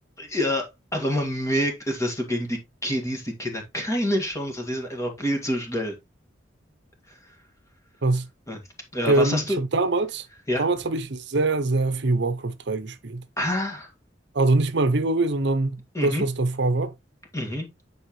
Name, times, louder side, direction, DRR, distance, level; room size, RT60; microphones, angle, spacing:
voice 1, 0.2-0.7 0.9-5.9 8.5-8.6 8.9-9.6 10.5-10.6 13.4-13.9 15.9-16.2 17.3-17.7, equal, 15° left, 2.0 m, -27 dB
voice 2, 9.1-10.3 10.6-13.2 14.3-16.9, right 2 dB, 65° right, 0.7 m, -23 dB
9.5 x 4.6 x 3.1 m
head